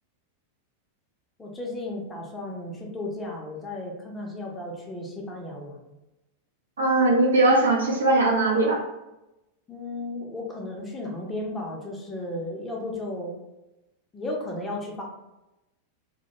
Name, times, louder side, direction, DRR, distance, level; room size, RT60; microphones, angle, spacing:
voice 1, 1.4-5.7 9.7-13.4 14.1-15.0, left 1 dB, 15° left, -1 dB, 0.6 m, -34 dB
voice 2, 6.8-8.8, right 2 dB, 70° right, -1 dB, 0.6 m, -20 dB
2.2 x 2.1 x 2.8 m, 0.95 s
figure-of-eight pair, 90°, 0 cm